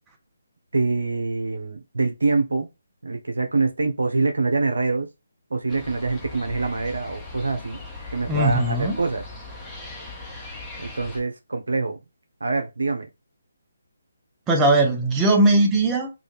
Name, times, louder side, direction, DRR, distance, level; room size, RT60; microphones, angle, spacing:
voice 1, 0.7-2.7 3.0-5.1 5.5-7.8 8.1-9.2 10.8-12.0 12.4-13.1, right 3 dB, 75° right, 0.9 m, -25 dB
sound 1, 5.7-11.2, left 3 dB, 10° left, 1.1 m, -39 dB
voice 2, 8.3-9.0 14.5-16.1, right 2 dB, 15° right, 0.8 m, -19 dB
3.8 x 2.6 x 3.2 m
figure-of-eight pair, 150°, 0 cm